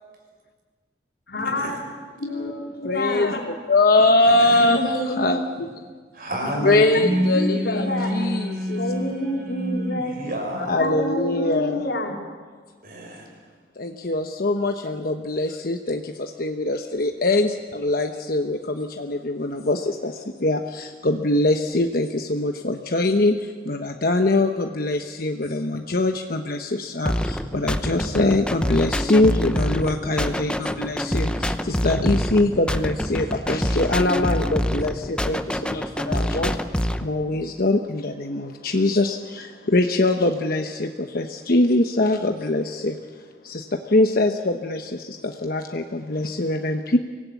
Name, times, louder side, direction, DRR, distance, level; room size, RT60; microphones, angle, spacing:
voice 1, 1.3-1.8 2.2-3.4 4.6-5.4 6.4-8.1 8.8-10.1 10.5-12.1, left 1 dB, 85° left, 0 dB, 4.0 m, -28 dB
voice 2, 2.8-5.7 6.6-8.8 10.7-11.8 13.8-47.0, left 2 dB, 55° left, 4 dB, 1.1 m, -23 dB
voice 3, 4.2-4.7 6.1-10.7 12.8-13.3, equal, 55° right, 2 dB, 6.1 m, -28 dB
sound 1, 27.1-37.1, equal, 5° left, 0.8 m, -26 dB
24.5 x 17.5 x 8.4 m, 1.5 s
head